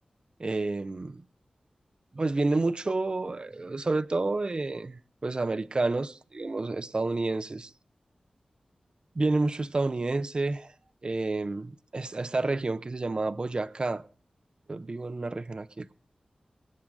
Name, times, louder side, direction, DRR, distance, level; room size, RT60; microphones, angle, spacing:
voice 1, 0.4-1.2 2.1-7.7 9.1-10.7 11.0-14.0 14.7-15.9, right 3 dB, 40° right, 0.7 m, -29 dB
25.5 x 8.6 x 3.8 m
wide cardioid pair, 80°, 2 cm